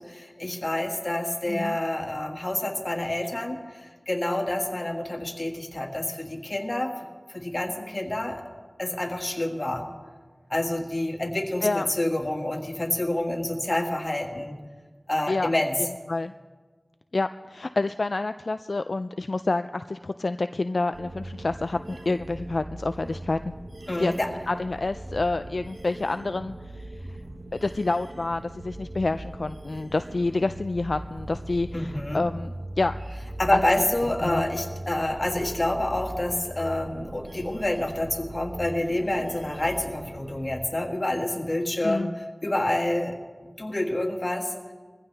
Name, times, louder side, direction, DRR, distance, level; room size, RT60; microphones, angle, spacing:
voice 1, 0.0-8.4 8.8-9.9 10.5-14.6 15.1-15.8 23.9-24.3 31.7-32.3 33.4-43.1 43.6-44.5, left 1 dB, 45° left, 2 dB, 1.9 m, -28 dB
voice 2, 1.4-1.8 11.6-11.8 15.3-15.6 16.1-16.3 17.1-23.5 24.0-27.2 27.5-32.9 33.5-33.6 34.3-34.5 41.8-42.1, left 2 dB, 75° left, 10 dB, 0.3 m, -28 dB
sound 1, 20.9-40.6, right 1 dB, 85° right, 1.3 m, -40 dB
21.5 x 15.5 x 3.4 m, 1.5 s
wide cardioid pair, 40°, 0 cm